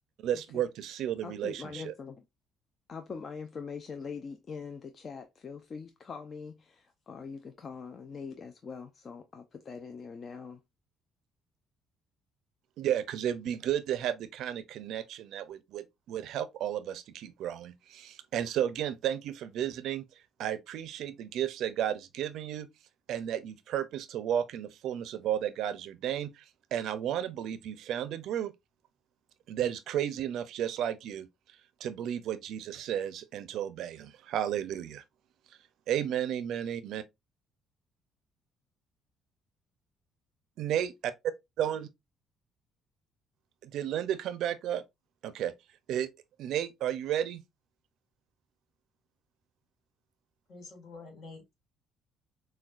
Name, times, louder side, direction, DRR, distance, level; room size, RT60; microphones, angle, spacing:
voice 1, 0.2-1.9 12.8-20.0 20.4-22.7 23.1-26.4 26.7-28.5 29.5-31.3 31.8-35.0 35.9-37.0 40.6-41.1 41.6-41.9 43.6-44.8 45.2-45.5 45.9-46.1 46.4-47.4, right 10 dB, 70° right, 0.5 m, -33 dB
voice 2, 1.2-2.2 2.9-10.6, left 5 dB, 35° left, 0.4 m, -43 dB
voice 3, 50.5-51.6, left 3 dB, 65° left, 1.8 m, -48 dB
6.0 x 2.3 x 2.4 m
cardioid pair, 120°, 0 cm